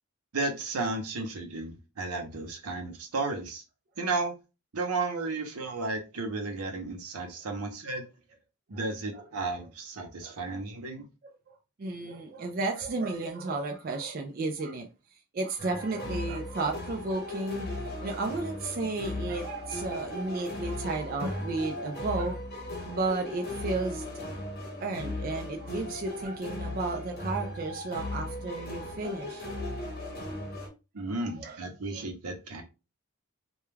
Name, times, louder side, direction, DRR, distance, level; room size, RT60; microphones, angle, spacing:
voice 1, 0.3-3.6 4.0-4.3 4.7-8.1 8.7-11.1 30.9-32.6, right 3 dB, 85° right, 0.7 m, -33 dB
voice 2, 11.8-14.9 15.3-17.7 18.0-22.4 22.8-24.0 24.8-29.6 31.0-31.6 31.9-32.0, right 3 dB, 40° right, 0.3 m, -33 dB
sound 1, 15.6-30.7, left 1 dB, 45° left, 0.8 m, -37 dB
2.3 x 2.1 x 3.1 m
head